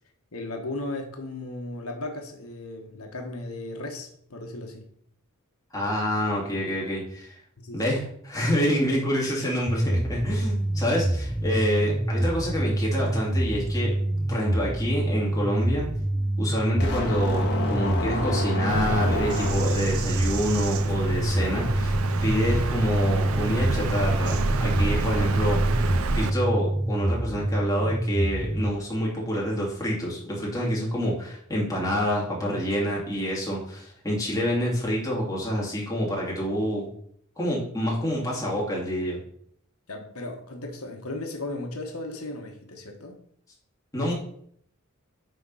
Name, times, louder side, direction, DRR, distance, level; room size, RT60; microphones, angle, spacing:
voice 1, 0.3-4.9 7.6-8.0 39.9-43.2, left 2 dB, 90° left, 3 dB, 1.3 m, -36 dB
voice 2, 5.7-7.4 7.7-13.9 14.3-15.9 16.4-22.0 22.2-25.6 26.1-36.9 37.4-39.2 43.9-44.1, equal, 15° left, -4 dB, 2.8 m, -27 dB
sound 1, 9.7-28.7, right 1 dB, 5° right, 0.3 m, -26 dB
sound 2, 16.8-20.0, left 2 dB, 55° left, 1.7 m, -29 dB
Bird vocalization bird call bird song, 18.7-26.3, right 3 dB, 75° right, 0.6 m, -28 dB
9.3 x 3.8 x 5.6 m, 0.65 s
head